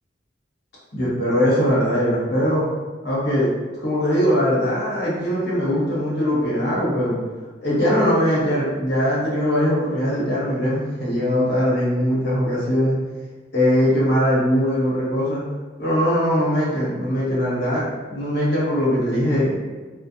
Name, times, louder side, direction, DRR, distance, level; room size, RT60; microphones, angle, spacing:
voice 1, 0.9-2.6 3.0-3.5 3.8-7.2 7.6-13.0 13.5-15.4 15.8-19.5, equal, 65° left, -7 dB, 0.9 m, -21 dB
2.8 x 2.1 x 2.3 m, 1.3 s
head